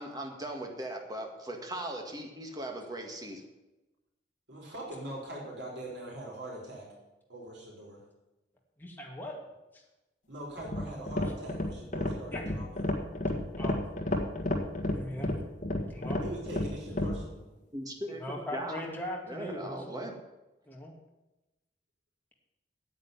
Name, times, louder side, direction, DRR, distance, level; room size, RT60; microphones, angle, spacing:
voice 1, 0.0-3.4 17.7-18.8 19.3-20.2, right 1 dB, 20° right, 3 dB, 1.9 m, -39 dB
voice 2, 4.5-6.9 7.3-8.0 10.3-12.8 16.2-17.4, right 1 dB, 80° right, -2 dB, 4.2 m, -42 dB
voice 3, 8.8-9.4 12.3-12.5 13.6-13.8 14.9-15.3 15.9-16.2 18.2-20.1 20.7-20.9, left 1 dB, 10° left, -2 dB, 2.4 m, -39 dB
sound 1, 10.6-17.2, left 1 dB, 45° left, 1.7 m, -31 dB
9.5 x 8.3 x 9.4 m, 1.0 s
head